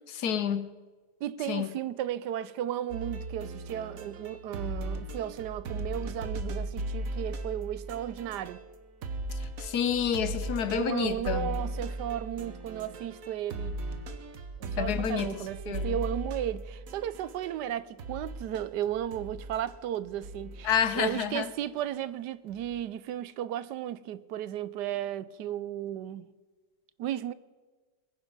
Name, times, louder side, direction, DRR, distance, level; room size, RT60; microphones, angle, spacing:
voice 1, 0.1-0.7 1.5-1.7 9.4-11.5 14.8-16.0 20.6-21.5, left 8 dB, 65° left, 1.3 m, -29 dB
voice 2, 1.2-8.6 10.7-13.8 14.6-26.3 27.0-27.3, right 11 dB, 80° right, 1.2 m, -34 dB
sound 1, 2.9-8.8 9.0-17.6 18.0-21.1 22.5-22.8, right 1 dB, 55° right, 1.5 m, -38 dB
22.0 x 9.9 x 5.4 m
omnidirectional pair, 1.8 m